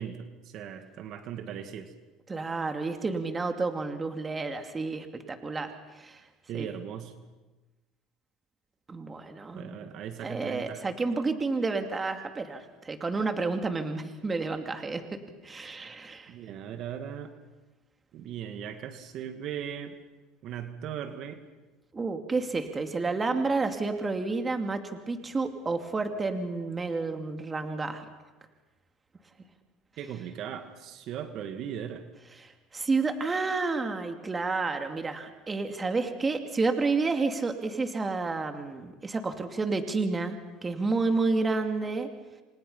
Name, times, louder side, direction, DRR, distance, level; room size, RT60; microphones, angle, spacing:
voice 1, 0.0-1.9 6.5-7.1 9.6-10.8 16.3-17.3 18.1-19.9 20.4-21.4 30.0-32.0, right 9 dB, 55° right, 7 dB, 2.2 m, -38 dB
voice 2, 2.3-6.2 6.5-6.7 8.9-9.9 10.2-16.3 21.9-28.0 32.4-42.1, right 3 dB, 20° right, 6 dB, 2.6 m, -30 dB
29.0 x 25.0 x 5.7 m, 1.2 s
supercardioid pair, 100°, 0 cm